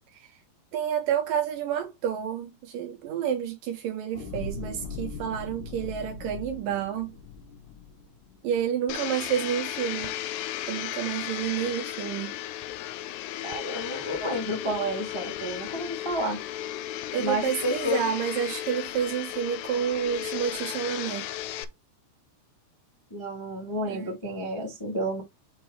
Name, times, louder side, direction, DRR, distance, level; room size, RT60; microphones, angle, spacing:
voice 1, 0.7-7.1 8.4-10.1 10.7-12.3 17.1-21.2 23.9-24.2, right 9 dB, 70° right, 2.2 m, -29 dB
sound 1, 4.1-8.6 9.1-9.3, left 4 dB, 65° left, 2.3 m, -40 dB
Domestic sounds home sounds, 8.9-21.6, left 13 dB, 85° left, 2.8 m, -35 dB
voice 2, 13.4-16.4 17.2-18.0 23.1-25.2, equal, 30° left, 0.4 m, -30 dB
6.2 x 3.7 x 4.6 m
omnidirectional pair, 4.7 m